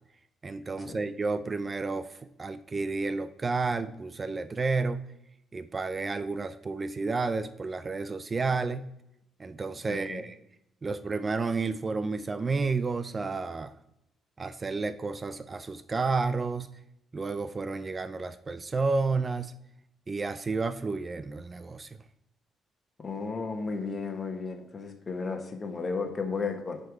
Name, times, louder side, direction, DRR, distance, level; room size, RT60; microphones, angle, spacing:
voice 1, 0.4-5.0 5.5-8.9 9.4-10.4 10.8-13.7 14.4-16.7 17.1-19.5 20.1-21.9, right 4 dB, 30° right, 13 dB, 0.3 m, -31 dB
voice 2, 9.9-10.2 23.0-26.8, left 4 dB, 35° left, 5 dB, 1.1 m, -34 dB
9.7 x 3.4 x 4.7 m, 0.82 s
cardioid pair, 90°, 0 cm